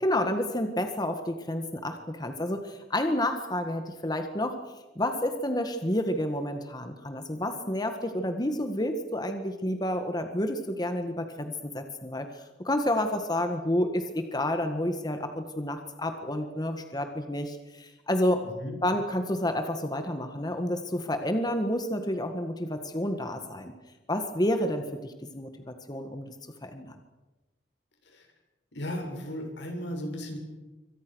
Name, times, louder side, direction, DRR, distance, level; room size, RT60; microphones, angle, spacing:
voice 1, 0.0-18.4 18.8-23.7 24.1-26.3 26.6-27.0, left 1 dB, 25° left, 6 dB, 1.7 m, -30 dB
voice 2, 28.7-30.4, equal, 80° left, 3 dB, 7.6 m, -35 dB
27.0 x 25.0 x 6.4 m, 1.1 s
head